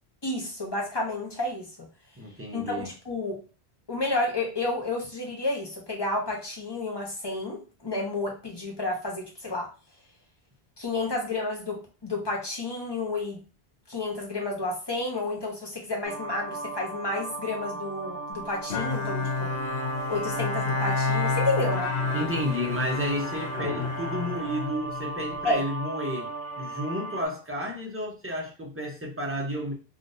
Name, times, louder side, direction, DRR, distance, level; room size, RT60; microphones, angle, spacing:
voice 1, 0.2-1.7 2.5-3.4 3.9-9.7 10.8-13.4 13.9-19.5 20.1-21.9 25.4-25.6, left 2 dB, 25° left, 0.8 m, -31 dB
voice 2, 2.2-2.9 22.1-26.3 26.6-29.7, equal, 15° right, 0.5 m, -31 dB
sound 1, 16.0-27.3, right 2 dB, 85° right, 1.1 m, -36 dB
Bowed string instrument, 18.7-25.4, left 4 dB, 80° left, 1.0 m, -30 dB
3.6 x 2.5 x 2.6 m
omnidirectional pair, 1.1 m